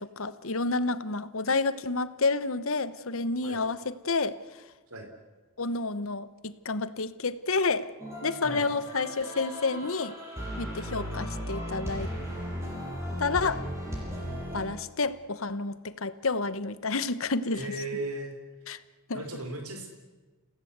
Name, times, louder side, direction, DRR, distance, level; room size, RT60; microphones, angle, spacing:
voice 1, 0.0-4.4 5.6-7.9 8.2-10.1 10.6-12.1 13.2-13.7 14.5-17.7 18.7-18.8 19.1-19.2, left 3 dB, 65° left, 14 dB, 1.1 m, -29 dB
sound 1, 8.0-14.7, equal, 15° right, 6.6 m, -36 dB
voice 2, 17.5-18.3 19.1-19.9, right 2 dB, 85° right, 4 dB, 3.6 m, -36 dB
29.5 x 17.0 x 8.1 m, 1.3 s
head